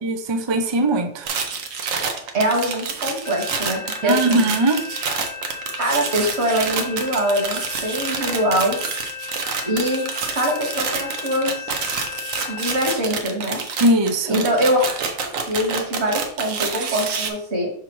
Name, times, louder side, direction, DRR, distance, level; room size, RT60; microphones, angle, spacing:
voice 1, 0.0-1.3 4.0-4.8 13.8-14.4, right 1 dB, 40° right, 6 dB, 0.4 m, -20 dB
sound 1, 1.3-17.3, right 5 dB, 80° right, 1.2 m, -28 dB
voice 2, 2.3-4.4 5.8-8.8 9.6-10.0 10.3-11.7 12.5-13.6 14.3-15.0 15.5-17.7, equal, 55° right, 0 dB, 1.9 m, -23 dB
sound 2, 3.3-13.0, left 6 dB, 55° left, 0.8 m, -35 dB
5.9 x 5.6 x 3.1 m, 0.62 s
omnidirectional pair, 1.3 m